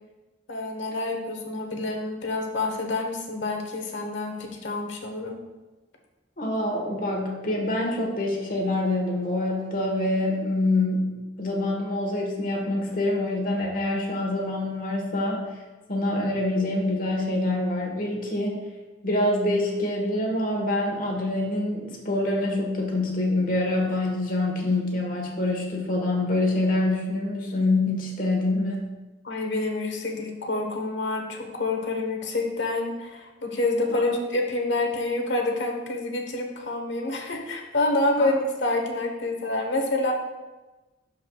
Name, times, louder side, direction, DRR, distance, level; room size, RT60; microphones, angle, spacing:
voice 1, 0.5-5.4 29.2-40.1, left 2 dB, 80° left, 2 dB, 1.1 m, -27 dB
voice 2, 6.4-11.1 11.4-15.5 15.9-18.6 19.0-28.8 33.9-34.1 38.2-38.3, left 2 dB, 50° left, 0 dB, 1.3 m, -26 dB
12.0 x 4.7 x 2.3 m, 1.1 s
head